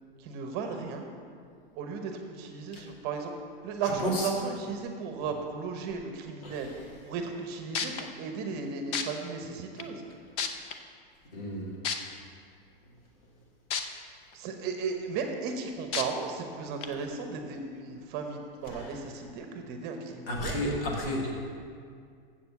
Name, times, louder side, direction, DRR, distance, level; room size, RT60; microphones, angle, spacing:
voice 1, 0.2-1.1 1.8-3.3 3.6-6.7 7.1-10.0 14.3-20.6, right 5 dB, 35° right, 4 dB, 0.9 m, -35 dB
sound 1, 7.4-7.5 7.7-8.0 8.9-9.0 9.8-9.9 10.4-10.7 11.8-12.0 13.7-13.8 14.3-14.4 15.9-16.0 16.8-16.9, left 7 dB, 20° left, 0.3 m, -30 dB
voice 2, 11.3-11.8 18.7-18.9 20.3-21.3, equal, 70° left, -2 dB, 2.4 m, -31 dB
7.4 x 6.8 x 7.1 m, 2.2 s
supercardioid pair, 150°, 30 cm